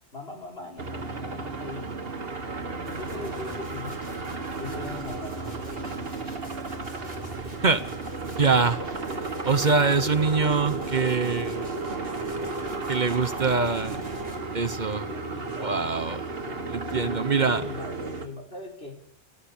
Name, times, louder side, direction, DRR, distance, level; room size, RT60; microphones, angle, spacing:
voice 1, 0.1-2.0 2.9-4.0 4.6-6.1 15.1-15.8 16.4-19.0, left 2 dB, 70° left, 1 dB, 5.2 m, -40 dB
sound 1, 0.8-18.3, right 3 dB, 65° right, 1.8 m, -33 dB
sound 2, 2.9-14.4, left 1 dB, 45° left, 5.4 m, -46 dB
voice 2, 8.4-8.8 9.4-11.6 12.9-14.0 14.5-15.1 15.6-16.2 16.7-17.6, right 4 dB, 45° right, 9 dB, 1.1 m, -24 dB
29.5 x 16.0 x 7.3 m, 0.68 s
omnidirectional pair, 1.1 m